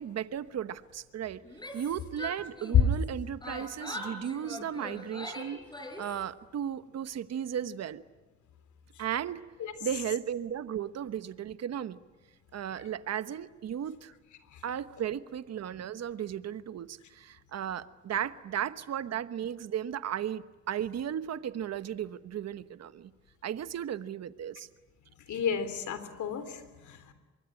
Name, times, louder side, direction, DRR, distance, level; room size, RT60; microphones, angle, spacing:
voice 1, 0.0-1.4 1.7-5.6 6.0-8.0 9.0-9.4 9.8-12.0 12.5-14.1 14.6-23.1 23.4-24.7, right 9 dB, 60° right, 13 dB, 1.1 m, -35 dB
Yell, 1.4-3.1 3.4-6.2, left 1 dB, 15° left, 6.8 m, -41 dB
voice 2, 25.3-27.1, left 7 dB, 75° left, 11 dB, 3.5 m, -34 dB
24.5 x 23.0 x 9.9 m, 1.2 s
cardioid pair, 90°, 30 cm